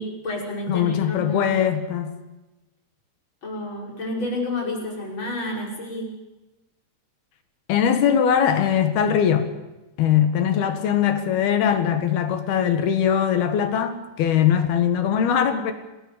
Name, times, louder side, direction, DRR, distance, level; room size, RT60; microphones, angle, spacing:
voice 1, 0.0-1.5 3.4-6.1 10.6-10.7, left 1 dB, 25° left, -1 dB, 6.0 m, -30 dB
voice 2, 0.7-2.1 7.7-9.5 10.0-15.7, left 8 dB, 65° left, 8 dB, 3.3 m, -21 dB
27.5 x 19.0 x 6.9 m, 1.0 s
omnidirectional pair, 5.0 m